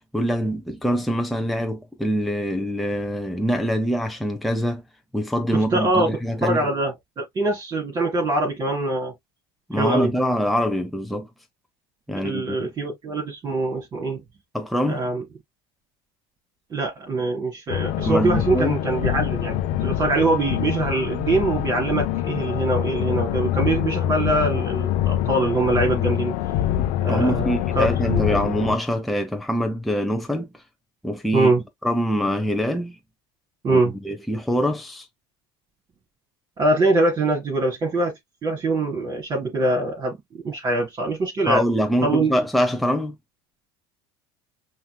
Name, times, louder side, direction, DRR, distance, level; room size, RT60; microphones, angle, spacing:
voice 1, 0.1-4.8 5.1-6.7 9.7-11.3 12.1-12.7 14.5-15.0 18.0-18.8 26.8-30.5 31.0-31.5 31.8-33.0 33.7-35.1 41.5-43.2, equal, ahead, 0.8 m, -24 dB
voice 2, 5.5-6.1 6.4-9.1 9.8-10.1 12.2-14.2 14.9-15.2 16.7-26.3 27.0-28.4 31.3-31.6 33.6-33.9 36.6-38.1 38.4-41.6 42.0-42.3, right 2 dB, 35° right, 2.8 m, -23 dB
sound 1, 17.7-28.8, left 12 dB, 65° left, 0.8 m, -25 dB
5.7 x 2.8 x 2.2 m
supercardioid pair, 105°, 13 cm